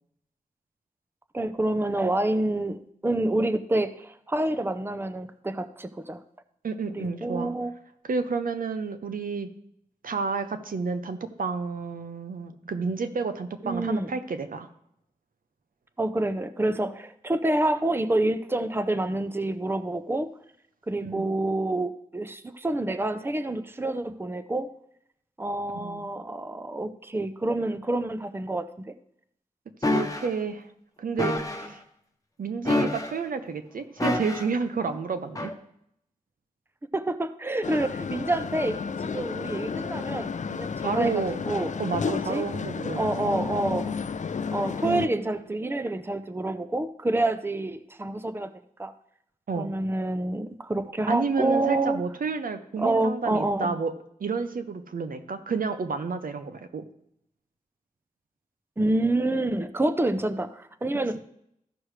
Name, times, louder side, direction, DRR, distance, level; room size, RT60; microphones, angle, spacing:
voice 1, 1.3-6.2 6.9-7.7 13.6-14.1 16.0-20.3 20.9-24.7 25.4-28.9 31.5-31.6 36.9-41.7 42.1-42.4 43.0-44.1 44.5-48.5 48.8-48.9 49.6-52.0 52.8-53.7 58.8-61.2, right 2 dB, 15° right, 10 dB, 0.6 m, -28 dB
voice 2, 6.6-7.5 8.0-9.5 10.0-14.7 21.0-21.3 25.7-26.1 29.8-30.7 31.0-31.8 32.4-35.5 40.8-41.4 41.8-43.0 44.8-45.1 49.5-49.7 51.1-53.9 54.2-56.8 61.1-61.2, right 5 dB, 85° right, 9 dB, 0.7 m, -30 dB
sound 1, 29.8-30.3 31.2-31.7 32.7-33.3 34.0-34.6 35.4-35.5, left 2 dB, 25° left, 1.1 m, -27 dB
sound 2, 37.6-45.1, left 6 dB, 60° left, 0.4 m, -32 dB
14.5 x 6.2 x 3.2 m, 0.74 s
wide cardioid pair, 60°, 14 cm